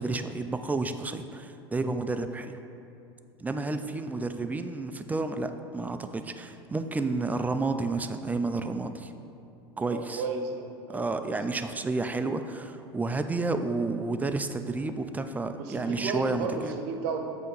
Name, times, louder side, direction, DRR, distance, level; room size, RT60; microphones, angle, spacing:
voice 1, 0.0-2.5 3.4-9.1 9.8-10.2 10.9-16.7, right 3 dB, 10° right, 8 dB, 0.3 m, -31 dB
voice 2, 9.7-11.4 15.6-17.3, right 4 dB, 65° right, 4 dB, 0.8 m, -34 dB
7.6 x 2.9 x 5.3 m, 2.6 s
hypercardioid pair, 85°, 14 cm